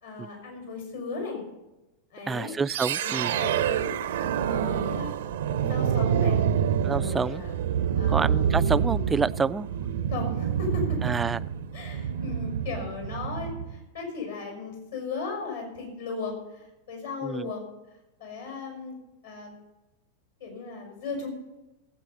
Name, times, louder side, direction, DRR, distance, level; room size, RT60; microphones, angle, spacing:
voice 1, 0.0-1.4 2.1-2.6 3.0-5.1 5.4-6.4 6.9-7.5 7.9-8.6 10.1-11.0 11.7-17.6 18.2-19.0 19.2-19.5 20.4-21.3, left 4 dB, 65° left, 1 dB, 5.3 m, -36 dB
voice 2, 2.3-3.4 6.8-7.4 8.1-9.7 11.0-11.4 17.2-17.5, right 5 dB, 15° right, 17 dB, 0.3 m, -28 dB
sound 1, 2.7-13.8, right 8 dB, 60° right, 0.6 m, -27 dB
17.5 x 8.2 x 5.4 m, 1.0 s
figure-of-eight pair, 90°, 0 cm